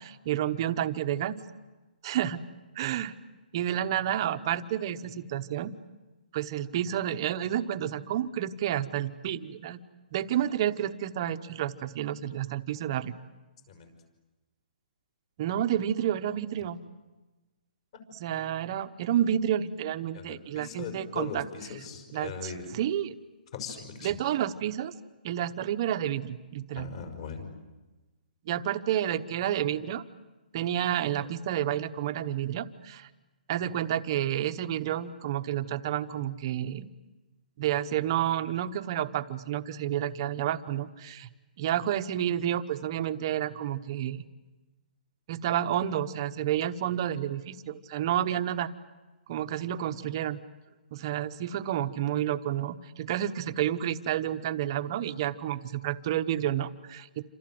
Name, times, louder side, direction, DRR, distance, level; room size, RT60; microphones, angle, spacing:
voice 1, 0.0-1.4 2.0-2.4 2.8-3.1 3.5-5.7 6.3-9.8 10.1-13.1 15.4-16.8 18.2-21.4 22.1-23.2 24.0-24.9 25.2-26.9 28.4-30.0 30.5-33.1 33.5-36.9 37.6-41.3 41.6-44.3 45.3-48.7 49.3-50.4 50.9-57.2, right 11 dB, 30° right, 10 dB, 1.0 m, -30 dB
voice 2, 20.1-22.6 23.5-24.2 26.8-27.5, left 6 dB, 40° left, 6 dB, 5.7 m, -39 dB
28.5 x 26.5 x 7.8 m, 1.2 s
hypercardioid pair, 170°, 5 cm